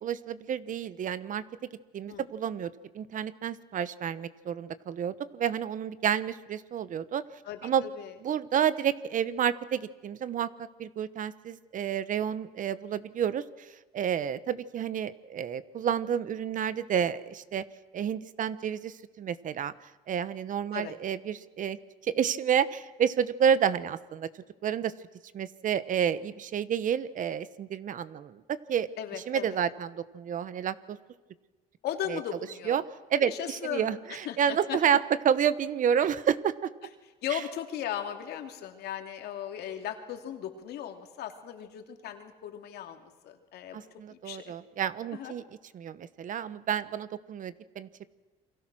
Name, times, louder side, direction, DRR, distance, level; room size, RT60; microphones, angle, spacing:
voice 1, 0.0-1.4 1.9-7.2 7.6-7.8 8.2-17.6 17.9-19.7 20.1-21.8 22.0-24.9 25.3-28.9 29.3-31.0 32.1-32.2 32.7-32.8 33.1-36.7 37.3-37.4 43.7-45.4 45.7-47.9, right 8 dB, 50° right, 15 dB, 1.0 m, -30 dB
voice 2, 7.4-8.1 20.7-21.0 29.0-29.6 31.8-32.8 33.2-33.9 34.2-34.8 37.2-43.8 44.1-44.5 45.1-45.3, left 10 dB, 75° left, 5 dB, 2.7 m, -37 dB
29.0 x 23.5 x 6.2 m, 1.2 s
cardioid pair, 110°, 17 cm